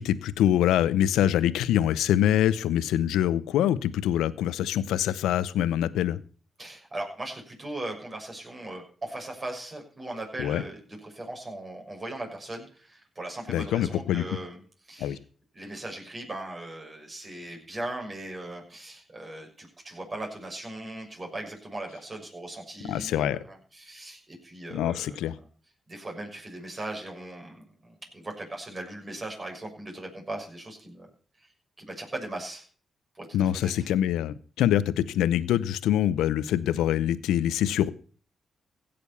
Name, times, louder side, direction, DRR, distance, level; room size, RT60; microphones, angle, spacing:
voice 1, 0.0-6.2 10.4-10.6 13.5-14.2 15.0-15.2 22.9-23.4 24.7-25.3 33.3-37.9, left 11 dB, 90° left, 16 dB, 0.7 m, -25 dB
voice 2, 6.6-14.6 14.9-15.2 15.5-25.2 25.9-31.1 31.4-31.5 31.8-32.6 33.1-33.9, right 1 dB, 35° right, 1 dB, 6.4 m, -39 dB
16.5 x 6.9 x 6.9 m, 0.42 s
supercardioid pair, 55°, 0 cm